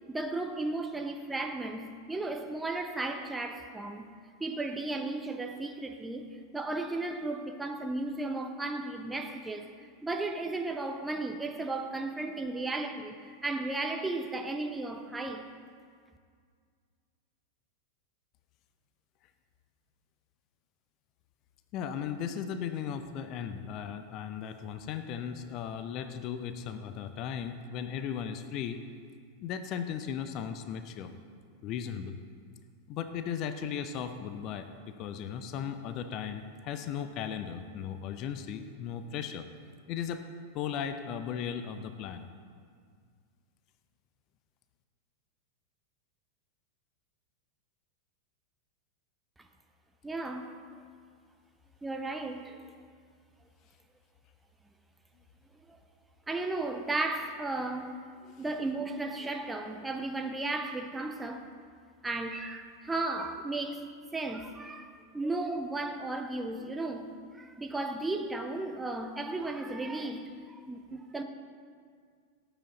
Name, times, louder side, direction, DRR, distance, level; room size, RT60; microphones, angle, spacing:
voice 1, 0.1-4.1 4.4-9.7 10.0-15.5 50.0-50.6 51.8-52.6 55.7-55.8 56.3-58.0 58.4-61.5 62.0-63.9 64.1-67.1 67.3-71.2, right 2 dB, 10° right, 0.9 m, -35 dB
voice 2, 21.7-28.8 29.4-31.1 31.6-32.2 32.9-39.5 39.9-40.2 40.5-42.2, left 8 dB, 40° left, 0.7 m, -36 dB
18.0 x 8.0 x 4.0 m
figure-of-eight pair, 90°, 0 cm